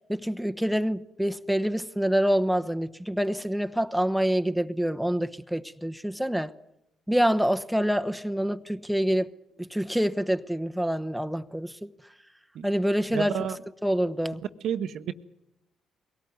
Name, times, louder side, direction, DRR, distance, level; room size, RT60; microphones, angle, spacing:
voice 1, 0.1-6.5 7.1-9.3 9.6-11.9 12.6-13.3 13.8-14.4, equal, ahead, 1.0 m, -26 dB
voice 2, 13.1-13.6 14.6-15.1, right 9 dB, 65° right, 1.0 m, -30 dB
22.0 x 18.0 x 9.3 m
hypercardioid pair, 45°, 0 cm